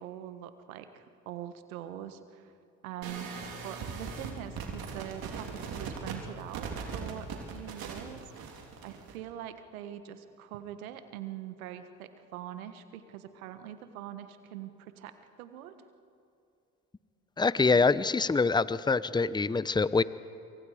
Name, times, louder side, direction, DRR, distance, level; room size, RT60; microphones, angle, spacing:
voice 1, 0.0-2.5 2.8-3.3 3.6-8.2 8.8-15.8 17.6-17.9, right 11 dB, 90° right, 10 dB, 1.5 m, -43 dB
sound 1, 3.0-9.2, right 5 dB, 60° right, 4.0 m, -39 dB
voice 2, 17.4-20.0, left 4 dB, 10° left, 17 dB, 0.7 m, -25 dB
27.5 x 24.5 x 5.0 m, 2.7 s
hypercardioid pair, 65°, 41 cm